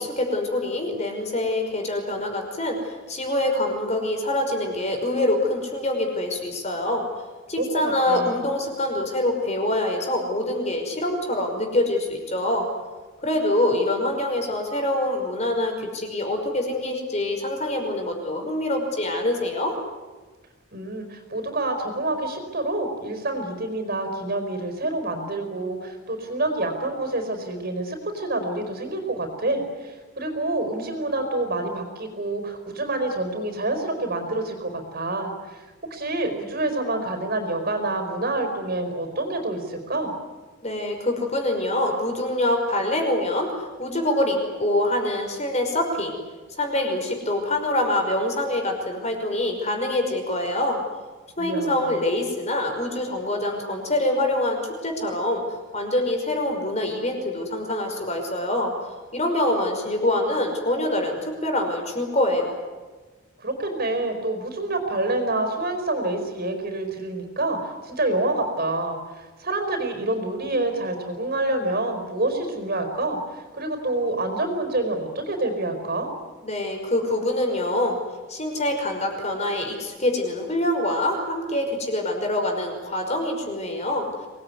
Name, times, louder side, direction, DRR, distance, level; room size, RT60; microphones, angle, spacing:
voice 1, 0.0-7.1 7.5-12.7 13.2-19.8 40.6-46.2 46.6-50.8 51.4-58.7 59.1-62.6 76.4-78.0 78.3-84.1, left 1 dB, 30° left, 3 dB, 5.6 m, -25 dB
voice 2, 7.6-8.4 20.7-40.1 51.4-52.0 63.4-76.1, right 2 dB, 45° right, 6 dB, 4.9 m, -27 dB
26.0 x 20.0 x 9.8 m, 1.3 s
head